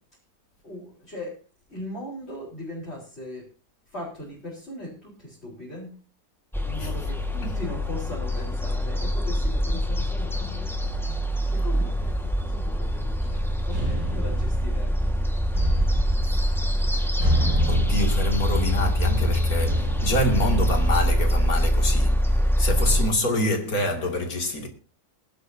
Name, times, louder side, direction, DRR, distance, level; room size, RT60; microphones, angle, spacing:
voice 1, 0.6-1.4 1.7-3.5 3.9-5.9 6.6-10.7 11.5-15.2, left 1 dB, 40° left, 4.4 m, -38 dB
sound 1, 6.5-23.1, equal, ahead, 1.4 m, -24 dB
sound 2, 12.9-21.5, equal, 70° right, 4.3 m, -30 dB
voice 2, 17.6-22.2 22.6-24.7, left 1 dB, 70° left, 2.9 m, -26 dB
20.5 x 12.0 x 2.7 m
omnidirectional pair, 1.6 m